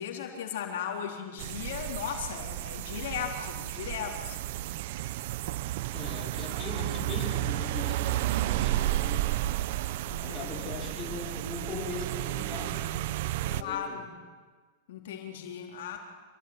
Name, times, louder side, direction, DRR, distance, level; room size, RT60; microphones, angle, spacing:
voice 1, 0.0-4.4 10.1-10.5 13.5-14.1 14.9-16.0, left 8 dB, 75° left, 2 dB, 4.2 m, -37 dB
sound 1, 1.4-13.6, right 15 dB, 60° right, 0.9 m, -32 dB
voice 2, 5.9-9.3 10.2-13.2 13.4-14.1, left 4 dB, 25° left, 0 dB, 5.4 m, -40 dB
27.5 x 22.0 x 10.0 m, 1.5 s
hypercardioid pair, 135°, 0 cm